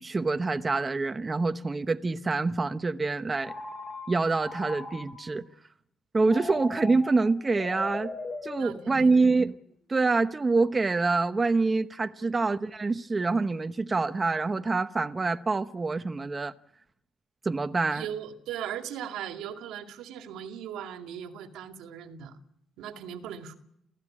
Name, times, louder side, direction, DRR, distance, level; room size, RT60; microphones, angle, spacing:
voice 1, 0.0-3.5 4.1-5.5 6.1-8.1 8.4-9.5 9.9-16.5 17.4-18.0, right 3 dB, 25° right, 1.0 m, -26 dB
Telephone, 3.4-5.4 6.2-9.3, left 3 dB, 30° left, 7.1 m, -40 dB
voice 2, 8.6-9.3 12.2-12.3 17.9-22.4 22.8-23.6, right 9 dB, 90° right, 2.2 m, -39 dB
28.0 x 15.5 x 8.7 m
cardioid pair, 90°, 0 cm